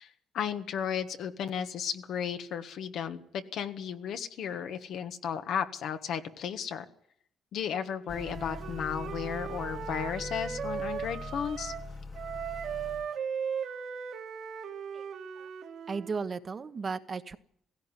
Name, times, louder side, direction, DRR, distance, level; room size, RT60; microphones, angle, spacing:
voice 1, 0.0-6.9 7.5-11.7, left 8 dB, 75° left, 8 dB, 1.5 m, -34 dB
Motor vehicle (road) / Accelerating revving vroom, 8.1-13.1, left 3 dB, 40° left, 1.6 m, -42 dB
Wind instrument woodwind instrument, 8.1-11.9 12.1-16.2, right 7 dB, 70° right, 2.4 m, -38 dB
voice 2, 14.9-15.5 15.9-17.4, right 5 dB, 40° right, 11 dB, 1.2 m, -36 dB
17.0 x 16.5 x 9.9 m, 0.69 s
cardioid pair, 90°, 0 cm